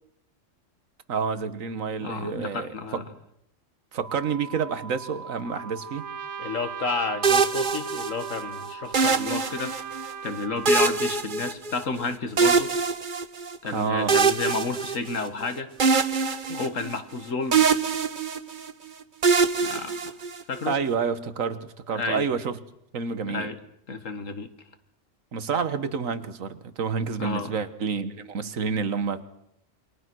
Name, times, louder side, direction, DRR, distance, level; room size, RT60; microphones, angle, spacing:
voice 1, 1.1-3.0 3.9-6.1 13.7-14.2 20.7-21.6 21.9-22.6 22.9-23.5 25.3-29.2, right 5 dB, 90° right, 12 dB, 1.7 m, -28 dB
voice 2, 2.0-3.0 6.4-9.8 10.2-12.7 13.6-15.7 16.5-17.6 19.6-20.1 20.5-20.7 22.0-22.2 23.3-23.6 23.9-24.5 27.2-27.5, left 4 dB, 75° left, 9 dB, 2.1 m, -31 dB
sound 1, 4.0-10.4, right 5 dB, 35° left, 2.2 m, -42 dB
Trumpet, 5.5-11.1, right 7 dB, 65° right, 1.6 m, -40 dB
sound 2, 7.2-8.4 8.9-10.1 10.6-12.0 12.4-13.6 14.1-15.4 15.8-17.2 17.5-18.7 19.2-20.6, right 5 dB, 40° right, 1.1 m, -23 dB
28.0 x 22.5 x 6.3 m, 0.77 s
omnidirectional pair, 1.3 m